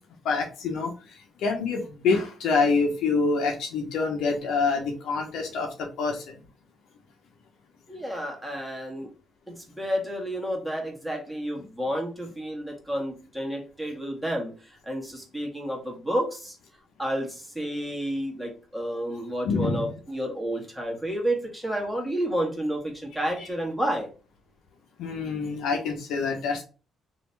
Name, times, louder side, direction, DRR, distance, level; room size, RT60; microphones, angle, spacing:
voice 1, 0.2-6.4 19.4-19.9 23.4-23.5 25.0-26.6, left 4 dB, 85° left, 2 dB, 0.9 m, -26 dB
voice 2, 7.9-9.1 9.5-16.6 17.0-24.1, equal, 5° right, -1 dB, 1.6 m, -30 dB
3.1 x 2.8 x 3.3 m, 0.34 s
cardioid pair, 90°, 0 cm